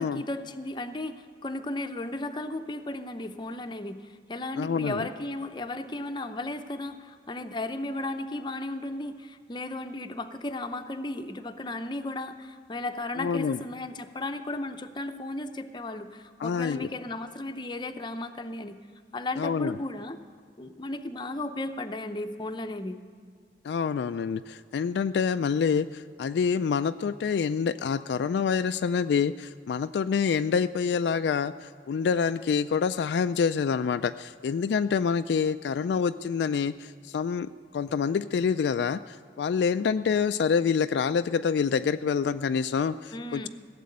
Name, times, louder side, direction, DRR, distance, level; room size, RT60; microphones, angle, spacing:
voice 1, 0.0-18.8 19.1-20.2 20.6-23.0 43.1-43.5, left 2 dB, 25° left, 7 dB, 0.6 m, -35 dB
voice 2, 4.5-5.1 13.2-13.6 16.4-16.9 19.4-19.8 23.6-43.5, left 6 dB, 70° left, 11 dB, 0.3 m, -27 dB
16.0 x 7.5 x 9.4 m, 2.2 s
head